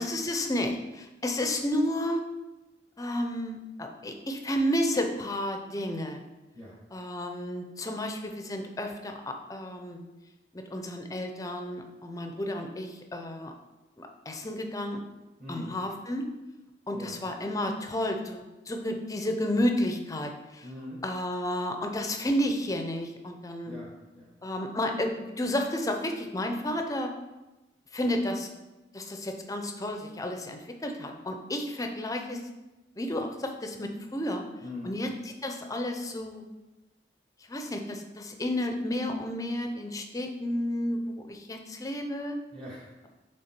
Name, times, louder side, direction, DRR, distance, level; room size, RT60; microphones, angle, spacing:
voice 1, 0.0-2.2 3.0-6.2 6.9-10.0 10.5-13.5 14.0-15.0 15.5-16.2 16.9-20.6 21.0-23.8 24.4-27.1 27.9-28.5 28.9-32.4 33.0-34.4 34.8-35.1 35.4-36.4 37.5-42.4, left 1 dB, 20° left, 4 dB, 0.5 m, -31 dB
voice 2, 15.4-15.7 16.9-17.2 20.6-21.0 23.6-24.3 34.6-35.0 42.5-43.1, left 2 dB, 30° right, -6 dB, 1.3 m, -42 dB
6.5 x 3.6 x 4.5 m, 1.1 s
head